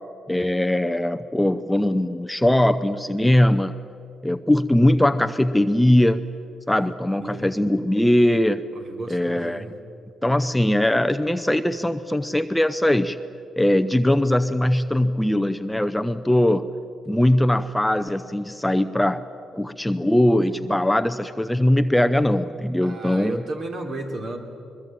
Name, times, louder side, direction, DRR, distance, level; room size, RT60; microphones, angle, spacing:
voice 1, 0.3-3.7 4.2-6.2 6.7-8.6 9.1-9.6 10.2-13.2 13.6-16.7 17.1-19.3 19.5-23.4, left 1 dB, 5° left, 10 dB, 0.7 m, -20 dB
voice 2, 7.2-7.5 8.7-9.7 22.8-24.4, right 2 dB, 50° right, 3 dB, 3.3 m, -33 dB
22.0 x 21.5 x 8.9 m, 2.6 s
cardioid pair, 90°, 0 cm